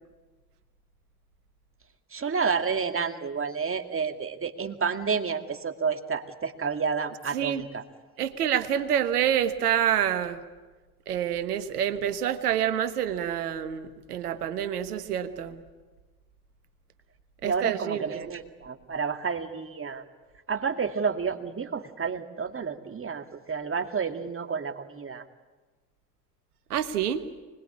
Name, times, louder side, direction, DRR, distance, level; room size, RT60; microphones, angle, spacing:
voice 1, 2.1-7.8 17.4-20.0 20.5-25.2, right 5 dB, 30° right, 5 dB, 2.3 m, -30 dB
voice 2, 7.3-7.6 8.2-10.4 11.1-15.6 17.4-18.3 26.7-27.2, right 9 dB, 85° right, 10 dB, 1.3 m, -27 dB
25.0 x 20.5 x 8.6 m, 1.3 s
hypercardioid pair, 55°, 45 cm